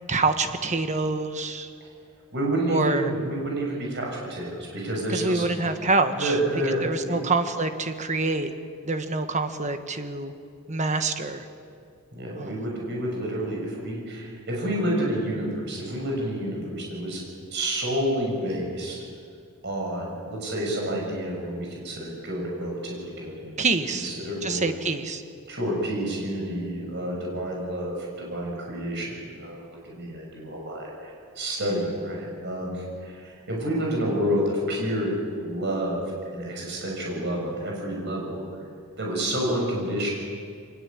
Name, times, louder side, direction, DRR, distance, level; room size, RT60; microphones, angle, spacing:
voice 1, 0.0-1.7 2.7-3.1 5.1-6.3 6.8-8.5 8.8-10.3 10.7-11.5 12.3-12.6 23.6-24.1 24.4-25.2, right 3 dB, 35° right, 8 dB, 1.4 m, -26 dB
voice 2, 2.3-5.6 6.2-7.2 12.1-17.2 17.5-19.0 19.6-24.6 25.5-38.4 39.0-40.1, right 1 dB, 50° right, -1 dB, 6.7 m, -29 dB
23.5 x 20.0 x 8.7 m, 2.3 s
head